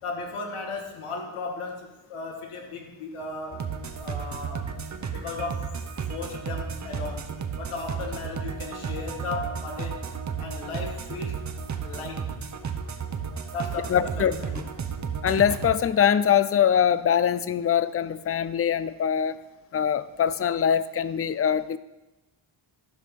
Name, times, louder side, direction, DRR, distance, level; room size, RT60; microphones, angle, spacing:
voice 1, 0.0-4.6 5.1-5.7 6.1-10.0 10.4-11.4 11.8-12.3 13.5-14.5, left 3 dB, 90° left, 2 dB, 2.0 m, -36 dB
sound 1, 3.5-15.8, right 6 dB, 35° right, 0.8 m, -33 dB
voice 2, 13.9-14.6 15.2-19.4 19.7-21.8, left 8 dB, 30° left, 15 dB, 0.3 m, -23 dB
12.0 x 5.2 x 5.9 m, 1.0 s
wide cardioid pair, 120°, 49 cm